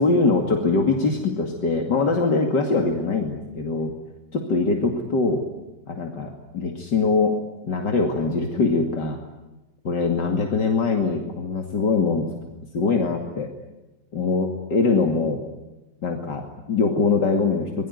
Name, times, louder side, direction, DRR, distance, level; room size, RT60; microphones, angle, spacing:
voice 1, 0.0-3.9 4.3-5.4 5.9-7.4 7.6-9.2 9.8-12.3 12.7-13.5 14.1-15.4 16.0-17.9, left 4 dB, 70° left, 3 dB, 3.1 m, -22 dB
26.0 x 21.5 x 9.6 m, 1.1 s
omnidirectional pair, 2.0 m